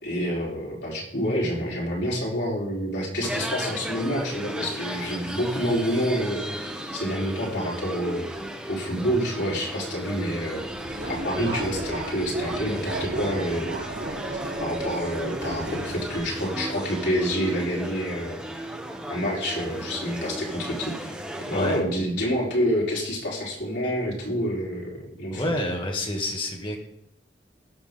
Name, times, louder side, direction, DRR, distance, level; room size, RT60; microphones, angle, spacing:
voice 1, 0.0-8.2 8.7-10.7 11.1-13.8 14.6-18.4 19.1-21.2 21.5-24.9 25.2-25.4, equal, 75° left, -4 dB, 4.1 m, -28 dB
sound 1, 3.2-21.8, right 1 dB, 5° right, 1.2 m, -35 dB
Subway metro underground, 10.5-16.2, right 2 dB, 85° right, 3.0 m, -34 dB
voice 2, 25.3-26.8, left 1 dB, 30° left, 1 dB, 2.0 m, -28 dB
18.0 x 6.3 x 3.8 m, 0.80 s
head